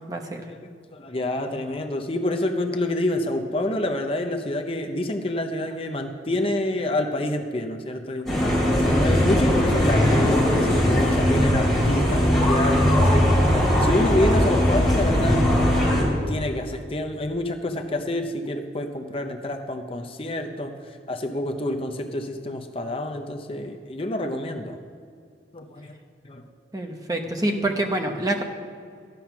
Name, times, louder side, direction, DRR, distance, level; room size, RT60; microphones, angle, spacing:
voice 1, 0.1-0.4 26.7-28.4, right 1 dB, 20° right, 2 dB, 0.9 m, -26 dB
voice 2, 0.9-8.3 8.8-13.2 13.8-15.5 16.3-24.8 25.5-25.9 26.2-26.4 27.4-27.5, left 1 dB, 30° left, 4 dB, 0.7 m, -28 dB
sound 1, 8.2-16.0, equal, ahead, 3.9 m, -19 dB
13.0 x 9.2 x 5.8 m, 2.3 s
head